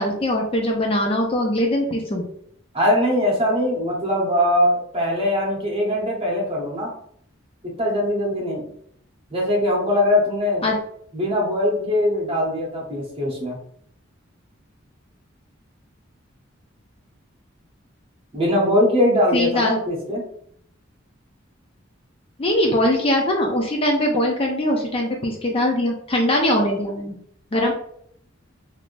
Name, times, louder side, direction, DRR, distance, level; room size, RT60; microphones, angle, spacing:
voice 1, 0.0-2.2 10.6-10.8 19.3-19.8 22.4-27.1 27.5-27.7, left 1 dB, 30° left, 1 dB, 0.4 m, -21 dB
voice 2, 2.7-6.9 7.6-8.6 9.3-10.6 11.1-13.6 18.3-20.2, left 1 dB, 30° right, -2 dB, 1.0 m, -21 dB
3.4 x 2.5 x 2.5 m, 0.66 s
head